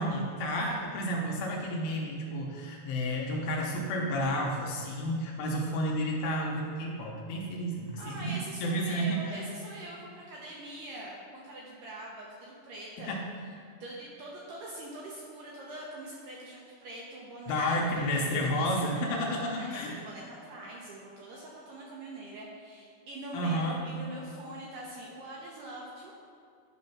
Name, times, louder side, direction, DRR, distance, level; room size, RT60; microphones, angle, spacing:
voice 1, 0.0-9.4 13.1-13.2 17.5-19.9 23.3-23.8, equal, 75° left, -1 dB, 2.4 m, -31 dB
voice 2, 8.0-13.2 13.4-13.5 13.8-26.1, right 1 dB, 75° right, -3 dB, 2.0 m, -43 dB
10.5 x 4.2 x 5.6 m, 2.3 s
omnidirectional pair, 4.7 m